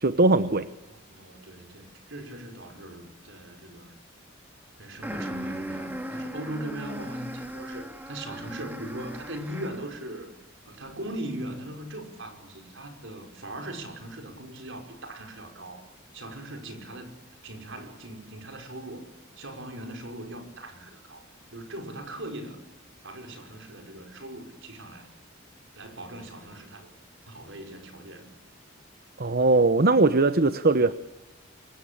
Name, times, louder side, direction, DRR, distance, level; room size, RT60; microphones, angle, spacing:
voice 1, 0.0-0.7 29.2-30.9, right 3 dB, 50° right, 13 dB, 1.0 m, -20 dB
voice 2, 0.9-3.9 4.8-10.3 10.7-15.8 16.1-17.2 17.4-19.1 19.4-21.3 21.5-22.6 23.0-25.1 25.8-26.9 27.3-28.3, right 1 dB, 65° right, 5 dB, 5.7 m, -40 dB
sound 1, 5.0-9.9, equal, 10° right, 2.0 m, -37 dB
27.5 x 24.5 x 8.8 m, 1.1 s
head